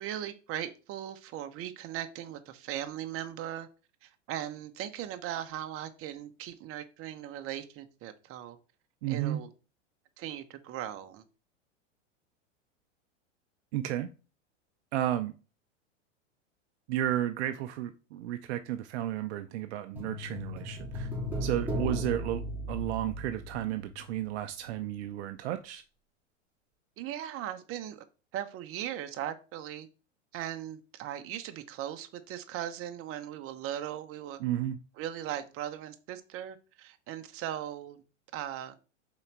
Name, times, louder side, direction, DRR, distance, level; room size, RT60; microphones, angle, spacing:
voice 1, 0.0-3.7 4.0-8.6 9.1-9.5 10.2-11.2 27.0-28.0 28.3-29.9 30.3-34.4 35.0-38.0 38.3-38.8, right 11 dB, 35° right, 1.0 m, -38 dB
voice 2, 9.0-9.4 13.7-14.1 14.9-15.3 16.9-21.1 21.4-22.4 22.7-25.8 34.4-34.8, right 12 dB, 60° right, 0.7 m, -32 dB
sound 1, 20.0-24.4 24.7-24.8, equal, 5° right, 2.9 m, -36 dB
5.6 x 4.1 x 4.6 m
hypercardioid pair, 105°, 37 cm